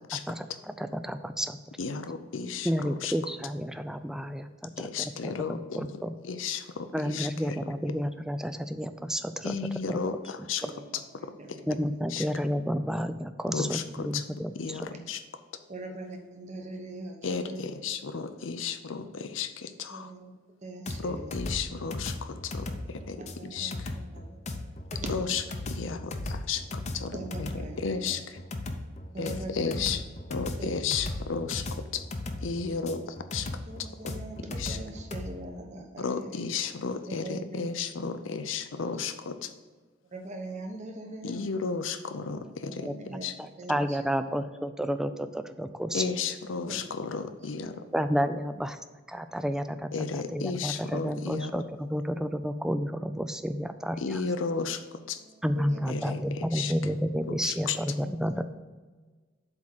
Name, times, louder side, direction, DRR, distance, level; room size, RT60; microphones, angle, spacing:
voice 1, 0.3-1.6 2.6-6.1 6.9-9.6 9.9-10.0 11.7-14.5 42.8-46.0 47.9-48.8 49.1-54.2 55.4-58.4, equal, 5° right, 10 dB, 0.3 m, -31 dB
voice 2, 1.8-3.1 4.8-5.9 6.2-7.7 9.4-10.6 12.1-12.3 13.5-14.2 14.5-15.2 17.2-20.1 21.0-23.9 25.1-27.5 27.8-28.4 29.2-30.0 30.3-32.0 32.4-33.0 33.3-33.5 34.6-34.8 36.0-39.5 41.2-42.9 43.2-43.3 45.9-47.8 49.9-51.5 54.0-55.2 55.9-56.7 57.3-57.8, left 5 dB, 85° left, 10 dB, 0.6 m, -33 dB
voice 3, 11.1-11.9 14.9-15.0 15.7-17.6 19.9-20.3 20.6-21.4 22.8-25.3 26.9-28.2 29.1-29.9 30.6-31.0 33.4-36.3 37.1-37.7 39.0-39.1 40.1-41.4 42.2-43.3 43.6-44.1 46.7-46.8 47.6-47.9 49.2-49.5 55.1-56.2 57.8-58.4, right 2 dB, 40° right, 3 dB, 1.0 m, -42 dB
sound 1, 20.9-35.3, left 2 dB, 35° left, 0.6 m, -36 dB
7.8 x 3.7 x 6.1 m, 1.3 s
head